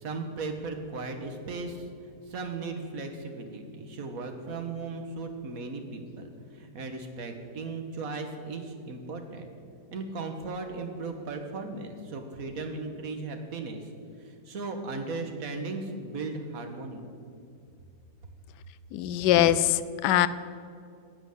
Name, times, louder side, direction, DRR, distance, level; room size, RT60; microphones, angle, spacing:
voice 1, 0.0-1.8 2.3-6.3 6.6-9.5 9.9-13.8 14.5-17.0, right 3 dB, 55° right, 5 dB, 1.8 m, -36 dB
voice 2, 18.9-20.3, left 12 dB, 80° left, 15 dB, 1.2 m, -22 dB
14.0 x 8.1 x 7.9 m, 2.4 s
omnidirectional pair, 1.9 m